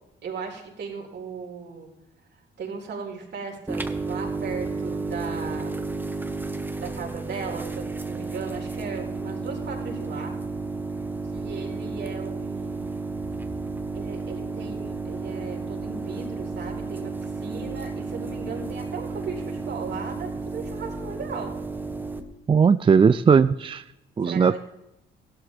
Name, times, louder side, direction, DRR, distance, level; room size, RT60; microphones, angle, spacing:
voice 1, 0.2-1.9 2.6-5.7 6.8-10.3 11.3-13.0 13.9-21.5 24.2-24.6, right 5 dB, 60° right, 0 dB, 4.3 m, -37 dB
sound 1, 3.7-22.2, right 3 dB, 10° right, 1.4 m, -32 dB
voice 2, 22.5-23.8 24.2-24.6, right 6 dB, 25° right, 13 dB, 0.4 m, -18 dB
16.0 x 12.5 x 3.5 m, 0.89 s
cardioid pair, 90°, 20 cm